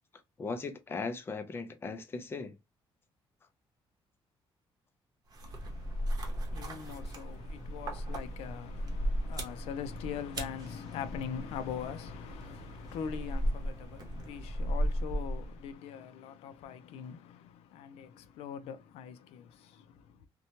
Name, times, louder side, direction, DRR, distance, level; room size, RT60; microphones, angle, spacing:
voice 1, 0.4-2.6, left 4 dB, 25° left, 0.5 m, -38 dB
sound 1, 5.3-15.7, equal, 40° right, 0.8 m, -36 dB
voice 2, 5.4-20.3, left 8 dB, 90° left, 0.4 m, -42 dB
2.8 x 2.2 x 2.7 m
cardioid pair, 140°, 10 cm